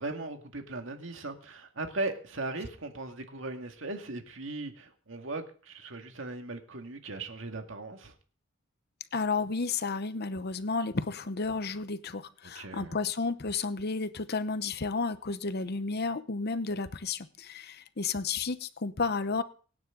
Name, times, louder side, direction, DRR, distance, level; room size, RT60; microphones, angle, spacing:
voice 1, 0.0-8.1 12.5-13.0, right 2 dB, 70° right, 2.1 m, -38 dB
voice 2, 9.1-19.4, left 4 dB, 55° left, 0.9 m, -32 dB
24.0 x 9.5 x 3.9 m
head